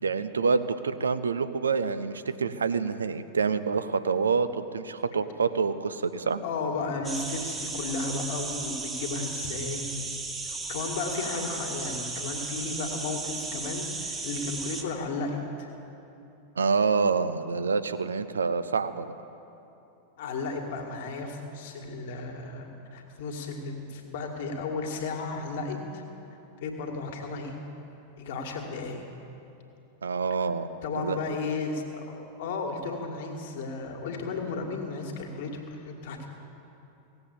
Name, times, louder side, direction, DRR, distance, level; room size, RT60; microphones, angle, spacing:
voice 1, 0.0-6.4 16.6-19.1 30.0-30.7 31.0-31.2, right 5 dB, 70° right, 12 dB, 0.6 m, -27 dB
voice 2, 6.4-10.0 10.4-15.7 20.2-26.0 26.6-27.6 28.2-29.1 30.8-36.3, left 3 dB, 55° left, 2 dB, 1.9 m, -34 dB
sound 1, 7.0-14.8, right 3 dB, 15° right, 1.3 m, -35 dB
17.0 x 8.0 x 8.4 m, 2.9 s
figure-of-eight pair, 90°, 0 cm